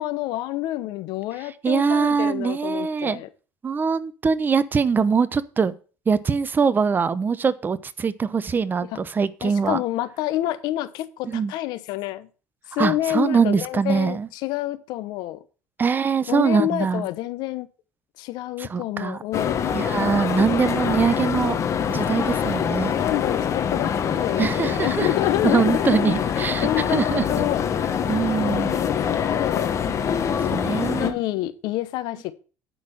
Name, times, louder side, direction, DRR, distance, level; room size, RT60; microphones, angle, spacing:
voice 1, 0.0-3.3 8.9-9.0 9.4-12.3 12.7-15.4 16.3-17.7 18.2-19.7 22.9-27.6 28.4-29.8 30.2-30.6 31.0-32.3, left 15 dB, 75° left, 0.9 m, -28 dB
voice 2, 1.6-3.2 3.6-5.8 6.1-9.8 11.2-11.5 12.8-14.3 15.8-17.1 18.6-19.2 19.7-21.6 21.9-22.9 24.4-25.1 25.4-27.2 28.1-28.8 30.5-31.2, right 5 dB, 25° right, 0.8 m, -23 dB
sound 1, 19.3-31.1, left 8 dB, 45° left, 1.4 m, -24 dB
10.0 x 4.4 x 7.5 m
supercardioid pair, 105°, 7 cm